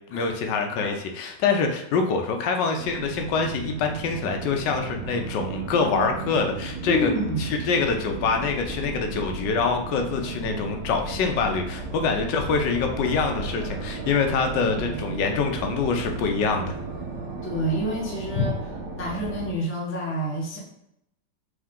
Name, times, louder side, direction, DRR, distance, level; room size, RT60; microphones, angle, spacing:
voice 1, 0.1-7.1 7.4-16.7 18.3-18.5, left 5 dB, 80° left, 4 dB, 1.3 m, -25 dB
sound 1, 2.8-19.5, right 3 dB, 70° right, 1.1 m, -35 dB
voice 2, 6.9-7.5 17.4-18.5 18.9-20.6, equal, 15° left, -4 dB, 0.5 m, -28 dB
3.6 x 3.2 x 3.6 m, 0.78 s
omnidirectional pair, 1.9 m